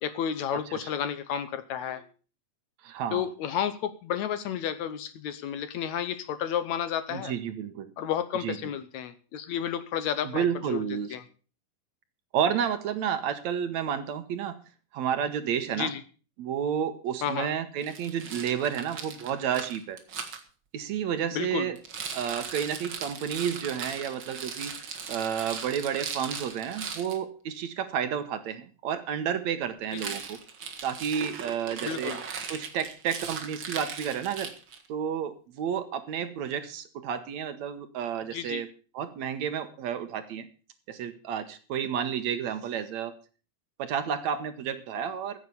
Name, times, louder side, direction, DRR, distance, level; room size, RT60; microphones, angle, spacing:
voice 1, 0.0-2.0 3.1-7.3 8.0-10.8 11.1-11.2 15.8-16.0 17.2-17.5 21.3-21.7 29.9-30.2 31.8-32.2 38.3-38.6, left 9 dB, 70° left, 13 dB, 2.0 m, -31 dB
voice 2, 2.8-3.3 7.1-7.9 8.4-8.6 10.2-11.2 12.3-14.6 14.9-15.9 16.4-20.0 20.7-21.8 22.1-24.7 25.1-30.4 30.8-32.2 32.5-34.5 34.9-38.7 38.9-40.5 40.9-43.1 43.8-45.4, right 8 dB, 65° right, 10 dB, 2.2 m, -31 dB
Rattle, 17.8-20.4 21.8-27.2 29.9-34.9, right 6 dB, 45° right, 2.1 m, -38 dB
15.0 x 7.8 x 7.0 m, 0.38 s
omnidirectional pair, 3.7 m